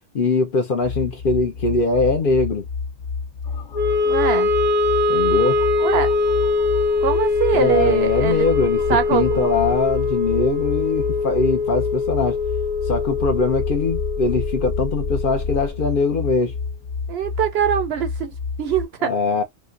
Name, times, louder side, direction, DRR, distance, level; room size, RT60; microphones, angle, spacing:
voice 1, 0.1-2.7 5.1-5.6 7.5-12.4 12.9-16.5 19.0-19.4, left 3 dB, 50° left, 0.8 m, -22 dB
sound 1, 0.8-18.9, left 5 dB, 30° left, 1.3 m, -30 dB
sound 2, 3.4-15.7, left 2 dB, 80° left, 1.1 m, -36 dB
Wind instrument woodwind instrument, 3.7-16.0, left 3 dB, 15° right, 0.6 m, -22 dB
voice 2, 4.1-4.5 5.8-6.1 7.0-8.5 8.9-9.5 17.1-19.1, right 8 dB, 65° right, 0.8 m, -23 dB
2.9 x 2.2 x 3.7 m
omnidirectional pair, 1.3 m